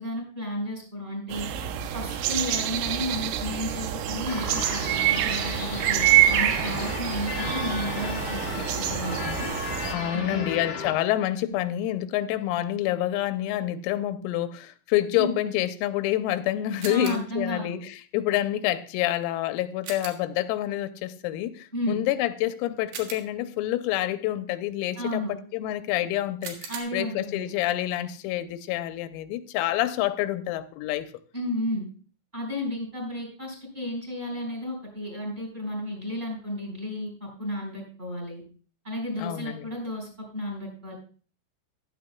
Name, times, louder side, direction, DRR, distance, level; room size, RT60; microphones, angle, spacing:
voice 1, 0.0-1.5 1.9-8.5 8.8-9.5 10.1-10.5 15.2-15.3 16.8-17.8 21.7-22.0 24.9-25.3 26.7-27.4 31.3-31.9 32.3-38.4 38.8-40.9, left 1 dB, 10° right, 4.0 m, -33 dB
sound 1, 1.3-9.9, right 11 dB, 80° right, 3.3 m, -26 dB
sound 2, 4.3-10.9, left 4 dB, 60° left, 1.6 m, -35 dB
voice 2, 9.9-31.1 39.2-39.7, left 14 dB, 90° left, 3.4 m, -28 dB
sound 3, 16.8-17.4 19.8-20.4 22.9-23.6 26.4-26.8, right 6 dB, 65° right, 2.5 m, -40 dB
14.0 x 12.0 x 2.3 m
omnidirectional pair, 5.9 m